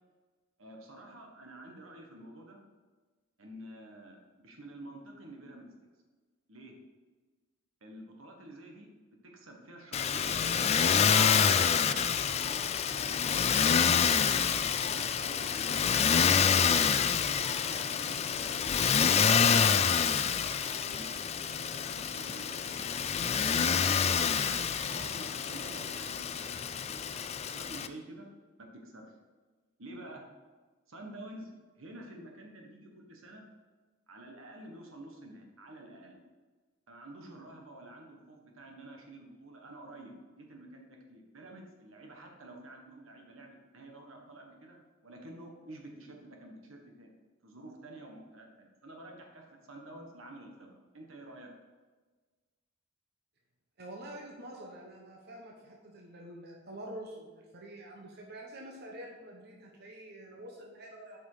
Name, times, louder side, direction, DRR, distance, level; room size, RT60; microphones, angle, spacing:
voice 1, 0.6-2.6 3.4-5.7 6.5-6.8 7.8-10.4 11.1-13.5 13.7-18.6 19.3-21.2 21.7-27.2 27.5-28.3 28.6-29.0 29.8-30.2 30.9-33.4 34.1-36.2 36.9-44.8 45.0-47.1 47.4-51.5, right 1 dB, 80° right, 1 dB, 1.5 m, -49 dB
Motor vehicle (road), 9.9-27.9, left 7 dB, 30° left, 0.4 m, -27 dB
sound 1, 10.2-26.6, equal, 35° right, 1.4 m, -54 dB
voice 2, 53.8-61.2, right 1 dB, 50° right, -1 dB, 1.1 m, -47 dB
8.5 x 5.4 x 4.9 m, 1.4 s
head